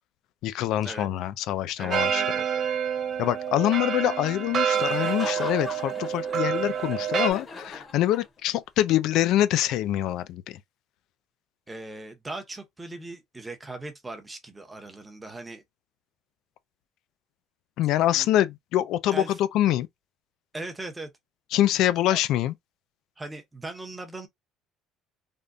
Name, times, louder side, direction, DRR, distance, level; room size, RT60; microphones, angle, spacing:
voice 1, 0.4-2.2 3.2-10.6 17.8-19.9 21.5-22.5, left 13 dB, 65° left, 0.4 m, -25 dB
voice 2, 1.8-2.6 11.7-15.6 17.9-18.3 19.1-19.3 20.5-21.1 22.1-22.2 23.2-24.3, right 2 dB, 10° right, 0.8 m, -39 dB
sound 1, 1.9-7.3, right 8 dB, 35° right, 0.5 m, -27 dB
Laughter, 4.7-8.6, left 4 dB, 30° left, 0.8 m, -40 dB
3.5 x 2.2 x 2.6 m
cardioid pair, 140°, 0 cm